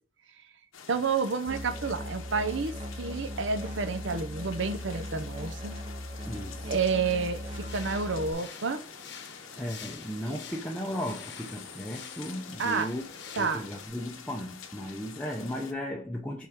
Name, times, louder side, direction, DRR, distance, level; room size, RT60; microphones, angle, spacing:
sound 1, 0.7-15.7, left 7 dB, 85° left, 0.9 m, -48 dB
voice 1, 0.9-5.7 6.7-8.8 10.3-10.4 12.6-12.9 13.4-13.6, right 4 dB, 65° right, 0.7 m, -30 dB
Musical instrument, 1.5-8.3, equal, 30° right, 0.8 m, -38 dB
voice 2, 6.2-6.7 9.6-13.0 13.4-16.5, equal, 5° left, 0.5 m, -36 dB
sound 2, 7.4-13.9, left 6 dB, 55° left, 0.9 m, -46 dB
5.7 x 4.6 x 3.6 m
head